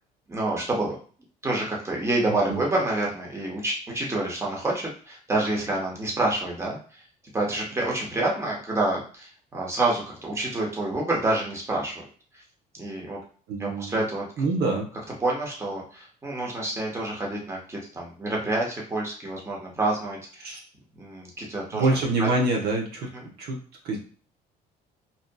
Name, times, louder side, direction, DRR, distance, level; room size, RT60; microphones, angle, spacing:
voice 1, 0.3-1.0 1.4-7.0 7.3-12.0 12.3-12.4 12.7-13.2 13.6-14.2 14.6-14.7 15.2-20.5 21.0-22.3 23.1-23.3, right 2 dB, 15° right, -2 dB, 0.9 m, -28 dB
voice 2, 13.5-14.0 14.4-14.9 20.4-20.6 21.7-23.1 23.4-23.6 23.8-24.0, right 2 dB, 70° right, -1 dB, 0.8 m, -25 dB
2.7 x 2.3 x 2.2 m, 0.42 s
cardioid pair, 110°, 17 cm